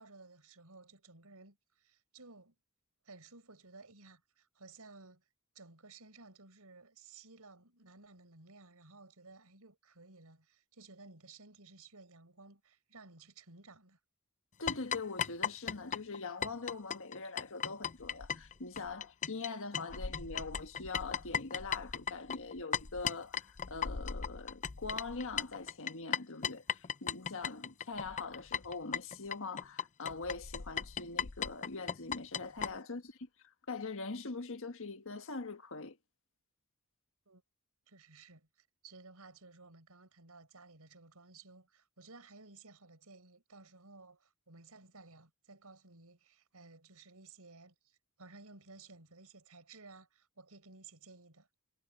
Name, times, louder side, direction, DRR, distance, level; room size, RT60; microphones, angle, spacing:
voice 1, 0.0-2.5 3.0-5.3 5.5-14.0 37.3-37.4 37.9-51.5, right 3 dB, 80° right, 4.6 m, -56 dB
voice 2, 14.6-33.3 33.7-36.0, left 3 dB, 60° left, 1.6 m, -43 dB
sound 1, 14.7-19.5 19.7-32.7, left 7 dB, 35° left, 0.5 m, -37 dB
head